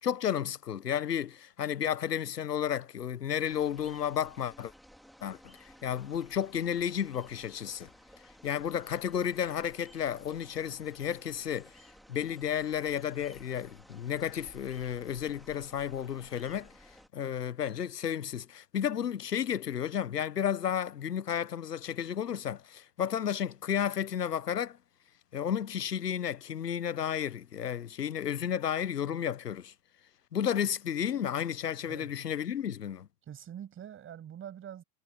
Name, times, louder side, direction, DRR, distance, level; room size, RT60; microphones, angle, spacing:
voice 1, 0.0-4.7 5.2-5.6 5.8-7.9 8.4-11.7 12.1-16.7 17.1-24.8 25.3-29.7 30.3-33.1, left 9 dB, 85° left, 1.2 m, -32 dB
sound 1, 3.5-17.1, equal, ahead, 3.7 m, -56 dB
voice 2, 33.3-34.8, right 9 dB, 25° right, 7.9 m, -44 dB
hypercardioid pair, 100°, 47 cm